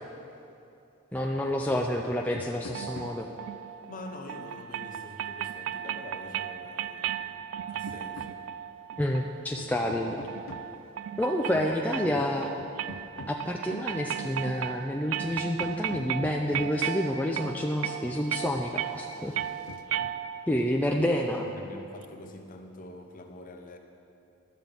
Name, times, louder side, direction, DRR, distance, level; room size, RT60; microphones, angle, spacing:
voice 1, 1.1-3.3 9.0-10.2 11.2-12.5 13.3-19.3 20.5-21.5, left 1 dB, 5° left, 0 dB, 0.4 m, -29 dB
sound 1, 2.1-3.4 4.9-5.1 6.6-7.0 7.6-8.4 8.9-9.1 9.5-10.8 11.3-11.5 12.1-13.6 14.3-14.6 14.9-15.0 15.3-16.9 18.1-18.5 18.7-20.2 20.7-21.0, left 3 dB, 90° left, 0.5 m, -46 dB
sound 2, 2.7-20.6, right 10 dB, 70° right, 0.3 m, -36 dB
voice 2, 3.9-8.4 11.5-12.0 21.3-23.8, left 2 dB, 40° left, 4 dB, 0.8 m, -46 dB
11.5 x 7.5 x 5.3 m, 2.7 s
head